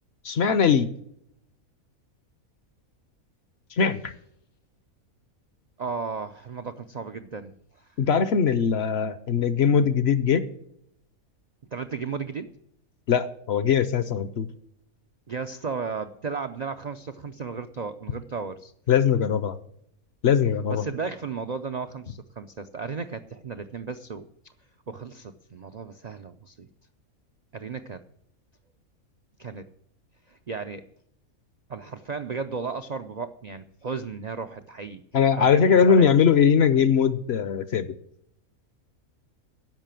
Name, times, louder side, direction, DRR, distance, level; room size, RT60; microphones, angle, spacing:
voice 1, 0.2-0.9 3.7-4.1 8.0-10.5 13.1-14.5 18.9-19.6 20.2-20.9 35.1-37.9, left 7 dB, 55° left, 13 dB, 0.8 m, -21 dB
voice 2, 5.8-7.5 7.8-7.9 11.7-12.5 15.3-18.7 20.7-24.3 24.9-26.7 27.5-28.0 29.4-29.7 30.3-30.9 31.7-35.0 35.3-36.1, right 5 dB, 65° right, 9 dB, 0.4 m, -34 dB
10.5 x 6.7 x 9.0 m, 0.74 s
omnidirectional pair, 1.5 m